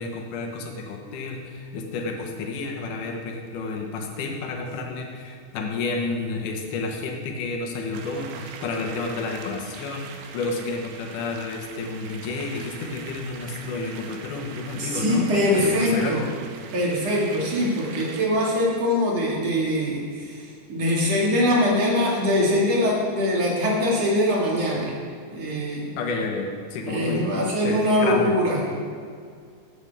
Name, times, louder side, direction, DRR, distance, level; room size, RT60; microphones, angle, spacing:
voice 1, 0.0-15.3 15.5-16.3 26.0-28.3, left 3 dB, 70° left, 2 dB, 2.0 m, -30 dB
sound 1, 7.9-18.3, right 6 dB, 80° right, 2.3 m, -42 dB
voice 2, 14.8-16.2 16.7-24.9 25.2-25.9 26.8-28.7, left 1 dB, 45° right, -4 dB, 2.5 m, -23 dB
17.0 x 7.9 x 3.5 m, 2.2 s
omnidirectional pair, 5.0 m